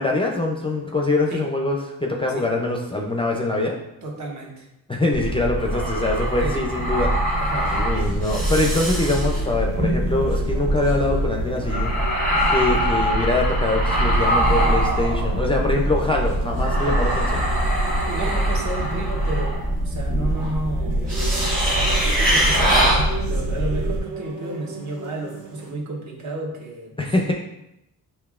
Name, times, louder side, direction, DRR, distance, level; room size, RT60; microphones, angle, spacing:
voice 1, 0.0-3.8 4.9-7.4 7.7-11.9 12.3-17.4 27.0-27.3, left 2 dB, 15° left, 0 dB, 0.4 m, -23 dB
voice 2, 4.0-4.7 6.4-6.6 7.4-7.8 18.1-21.0 22.0-27.3, right 2 dB, 50° right, -1 dB, 1.0 m, -32 dB
sound 1, 5.1-24.0, right 1 dB, 20° right, 1.2 m, -22 dB
sound 2, 7.5-25.7, right 3 dB, 65° right, 1.3 m, -38 dB
6.7 x 2.8 x 2.4 m, 0.86 s
cardioid pair, 110°, 37 cm